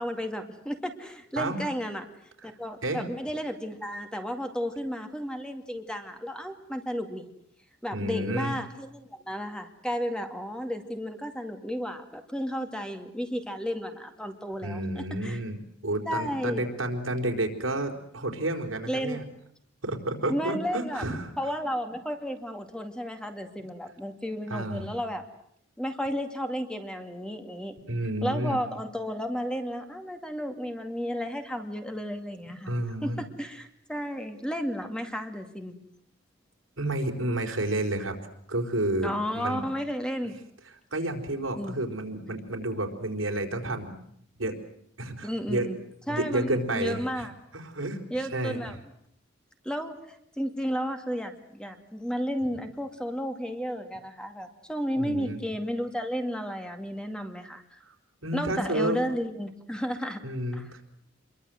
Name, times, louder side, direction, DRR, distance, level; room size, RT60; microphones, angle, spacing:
voice 1, 0.0-2.1 2.4-7.3 7.8-15.4 16.1-16.7 18.9-19.2 20.3-21.1 21.4-25.2 25.8-27.8 28.2-32.7 33.0-35.7 39.0-40.4 41.6-41.8 45.2-45.8 46.1-47.3 48.1-48.8 49.6-57.8 58.3-60.2 60.5-60.7, equal, 5° left, 6 dB, 2.2 m, -33 dB
voice 2, 7.9-8.5 14.6-15.6 15.8-19.2 19.8-21.3 24.5-24.9 27.9-28.6 32.7-33.2 36.8-38.1 38.5-39.6 40.9-43.9 44.4-44.6 45.0-45.7 46.1-47.3 47.5-48.0 48.3-48.7 55.0-55.4 57.8-57.9 58.2-59.0 60.2-60.8, right 1 dB, 85° right, 4 dB, 4.4 m, -30 dB
28.0 x 22.5 x 7.8 m, 0.71 s
head